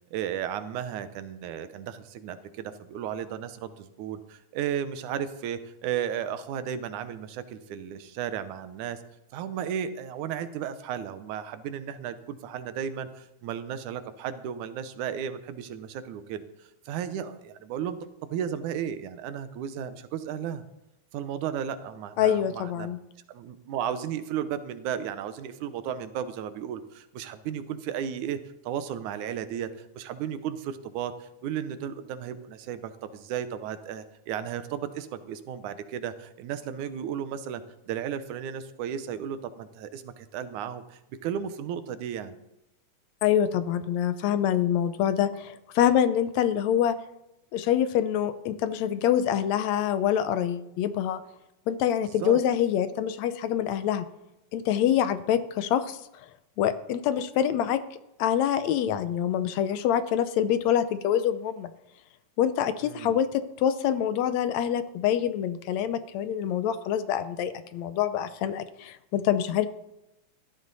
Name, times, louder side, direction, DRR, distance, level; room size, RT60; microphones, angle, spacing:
voice 1, 0.1-9.0 9.3-18.0 18.3-20.6 21.1-22.9 23.3-28.4 28.6-42.4 52.2-52.4 62.8-63.2, right 9 dB, 90° right, 11 dB, 2.4 m, -34 dB
voice 2, 22.2-23.0 43.2-47.0 47.5-51.2 51.7-54.1 54.5-56.0 56.6-57.8 58.2-61.7 62.4-69.7, left 10 dB, 75° left, 12 dB, 1.9 m, -25 dB
16.0 x 12.5 x 4.1 m, 0.88 s
omnidirectional pair, 3.4 m